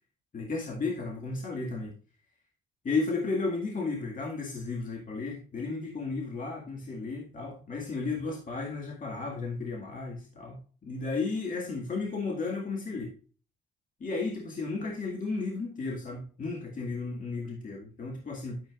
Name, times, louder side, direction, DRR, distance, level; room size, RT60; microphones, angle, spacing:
voice 1, 0.3-1.9 2.8-13.1 14.0-18.6, left 3 dB, 40° left, -1 dB, 2.0 m, -34 dB
9.7 x 7.2 x 2.4 m, 0.39 s
cardioid pair, 90°, 20 cm